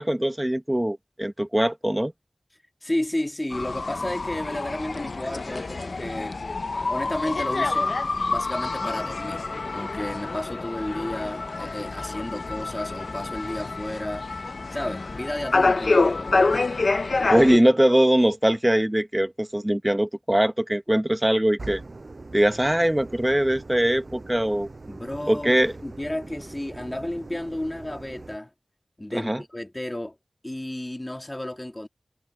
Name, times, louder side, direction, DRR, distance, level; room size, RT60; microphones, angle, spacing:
voice 1, 0.0-2.1 17.3-21.8 22.3-24.7 25.3-25.7 29.1-29.4, right 1 dB, 15° right, 1.4 m, -22 dB
voice 2, 2.8-6.4 6.9-8.0 8.3-9.5 9.7-14.3 14.7-16.5 24.9-28.5 29.0-30.2 30.4-31.9, left 1 dB, 25° left, 2.4 m, -32 dB
sound 1, 3.5-17.6, left 3 dB, 75° left, 0.8 m, -27 dB
sound 2, 21.6-28.4, right 3 dB, 60° right, 6.3 m, -42 dB
wide cardioid pair, 40°, 0 cm